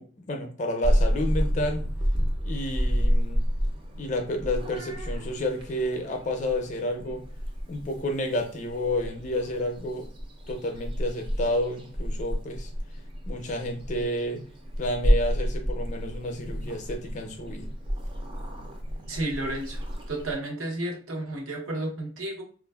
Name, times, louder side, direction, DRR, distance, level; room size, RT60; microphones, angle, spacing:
voice 1, 0.0-1.9 2.4-3.5 4.0-7.2 7.7-10.1 10.5-12.7 13.3-14.4 14.8-17.7, left 1 dB, 35° left, 4 dB, 0.4 m, -30 dB
Purr / Meow, 0.8-20.3, equal, 25° right, 0.4 m, -30 dB
voice 2, 19.1-19.8 20.1-22.4, right 1 dB, 90° right, -1 dB, 0.8 m, -32 dB
3.1 x 2.4 x 2.3 m, 0.42 s
head